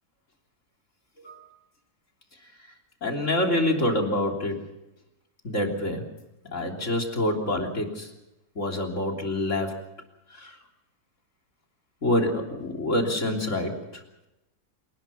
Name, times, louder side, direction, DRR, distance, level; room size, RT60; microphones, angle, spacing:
voice 1, 3.0-4.6 5.4-6.0 6.5-8.1 8.6-9.8 10.4-10.6 12.0-14.0, left 1 dB, 50° left, 2 dB, 3.8 m, -26 dB
27.5 x 19.0 x 5.8 m, 0.93 s
omnidirectional pair, 1.7 m